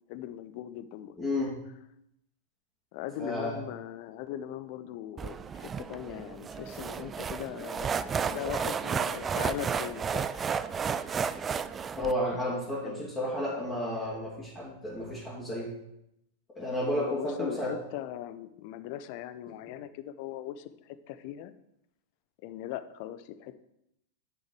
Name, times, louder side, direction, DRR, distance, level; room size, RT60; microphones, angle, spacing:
voice 1, 0.1-1.2 2.9-7.9 8.2-10.3 12.8-13.1 16.9-21.5 22.4-23.5, left 11 dB, 45° left, 12 dB, 0.6 m, -39 dB
voice 2, 1.2-1.5 3.2-3.6 11.9-15.7 16.6-17.7, left 1 dB, 15° left, -6 dB, 2.5 m, -32 dB
sound 1, 5.2-12.1, right 6 dB, 20° right, 0.4 m, -32 dB
9.3 x 6.4 x 4.7 m, 0.81 s
figure-of-eight pair, 90°, 0 cm